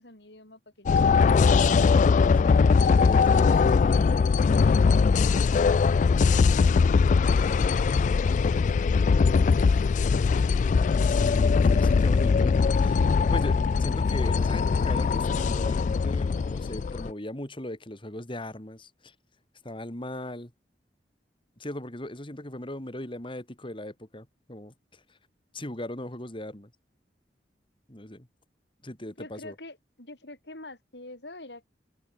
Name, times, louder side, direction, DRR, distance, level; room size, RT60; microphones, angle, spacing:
voice 1, 0.0-2.4 29.2-31.7, left 2 dB, 75° left, 7.2 m, -47 dB
sound 1, 0.9-17.1, left 5 dB, 45° left, 0.3 m, -21 dB
voice 2, 3.0-4.1 5.9-6.0 11.1-19.1 19.6-20.5 21.6-25.2 25.5-26.7 27.9-28.3 28.8-29.5, left 1 dB, 30° left, 3.2 m, -39 dB
head